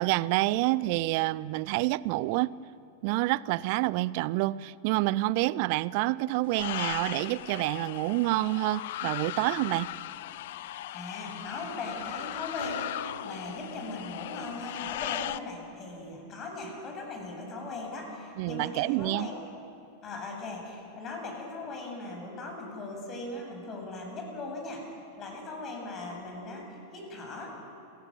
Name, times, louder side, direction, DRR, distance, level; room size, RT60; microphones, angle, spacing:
voice 1, 0.0-2.5 3.0-9.9 18.4-19.3, right 18 dB, 45° right, 21 dB, 0.6 m, -28 dB
sound 1, 6.5-15.4, left 14 dB, 55° left, 0.7 m, -38 dB
voice 2, 10.9-19.3 20.0-24.8 25.1-27.5, left 2 dB, 30° left, 2 dB, 7.7 m, -39 dB
sound 2, 12.6-15.9, left 3 dB, 80° left, 0.9 m, -45 dB
28.0 x 18.0 x 8.9 m, 2.7 s
figure-of-eight pair, 90°, 0 cm